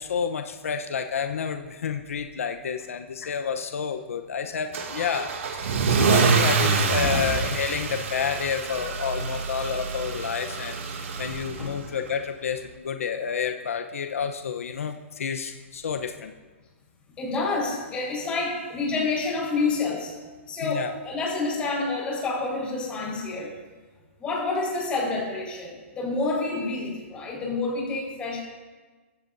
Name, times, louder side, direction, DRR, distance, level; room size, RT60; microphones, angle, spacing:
voice 1, 0.0-16.3 20.6-20.9, left 6 dB, 80° left, 6 dB, 1.0 m, -30 dB
Car / Engine starting / Accelerating revving vroom, 4.7-11.8, right 5 dB, 70° right, 2.5 m, -26 dB
voice 2, 17.2-20.1 20.5-23.5 24.2-28.4, left 3 dB, 15° left, -2 dB, 5.1 m, -28 dB
21.0 x 15.5 x 2.7 m, 1.3 s
hypercardioid pair, 155°, 7 cm